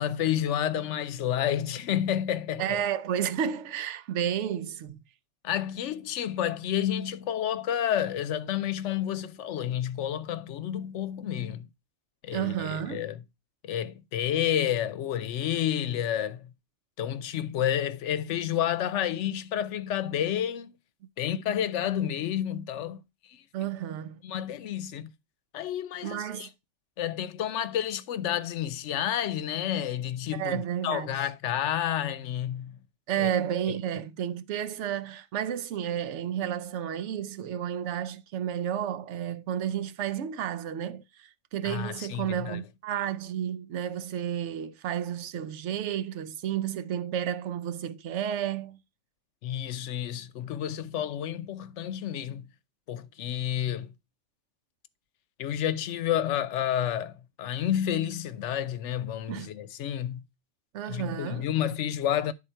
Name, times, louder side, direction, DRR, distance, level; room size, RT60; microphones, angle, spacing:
voice 1, 0.0-2.8 5.4-11.7 12.2-13.2 13.6-16.5 17.0-20.7 21.2-23.0 23.3-23.4 24.2-25.1 25.5-26.5 27.0-32.8 33.2-33.3 41.6-42.6 49.4-52.5 52.9-53.9 55.4-60.2 60.9-62.3, left 10 dB, 85° left, 0.9 m, -30 dB
voice 2, 2.6-5.0 12.3-13.1 23.5-24.2 26.0-26.5 30.3-31.3 33.1-48.8 59.3-59.5 60.7-61.5, right 9 dB, 80° right, 0.9 m, -31 dB
10.0 x 3.8 x 4.4 m
omnidirectional pair, 1.2 m